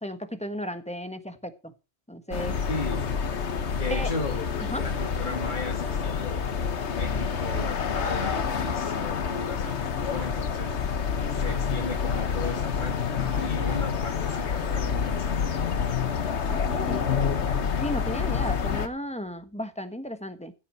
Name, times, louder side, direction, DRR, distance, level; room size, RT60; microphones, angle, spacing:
voice 1, 0.0-1.7 2.1-2.6 3.9-4.1 4.7-4.8 16.5-17.1 17.5-20.5, equal, 5° left, 8 dB, 1.3 m, -34 dB
sound 1, 2.3-18.9, left 6 dB, 80° left, 1.4 m, -28 dB
voice 2, 2.7-3.1 3.7-4.4 4.8-10.8 11.3-15.7, left 3 dB, 45° left, 1 dB, 2.6 m, -36 dB
sound 2, 7.3-8.8 9.6-9.8 10.1-10.3 11.4-11.6 11.9-12.6 13.3-13.8 14.3-14.4 14.7-14.9, equal, 50° right, 5.4 m, -46 dB
15.5 x 8.3 x 4.4 m, 0.30 s
omnidirectional pair, 1.2 m